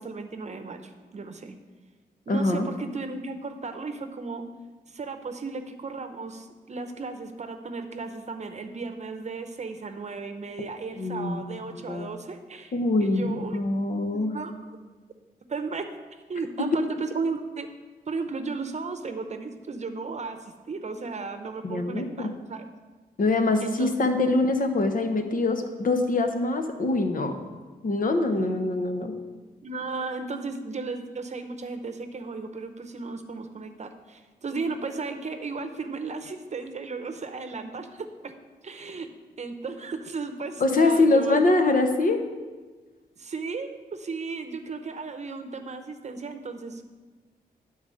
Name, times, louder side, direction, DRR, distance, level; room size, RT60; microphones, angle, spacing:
voice 1, 0.0-1.5 2.3-4.4 4.9-12.7 13.0-13.6 14.1-14.8 15.5-15.9 16.3-17.7 18.1-22.7 23.6-24.1 29.6-38.3 38.6-39.1 39.4-41.4 43.2-46.8, right 4 dB, 45° right, 7 dB, 0.8 m, -35 dB
voice 2, 2.3-2.7 11.0-11.4 11.7-12.1 12.7-14.4 16.6-16.7 21.6-22.3 23.2-27.3 27.8-29.1 40.6-42.2, left 2 dB, 60° left, 6 dB, 1.0 m, -24 dB
10.5 x 4.0 x 6.4 m, 1.3 s
cardioid pair, 85°, 16 cm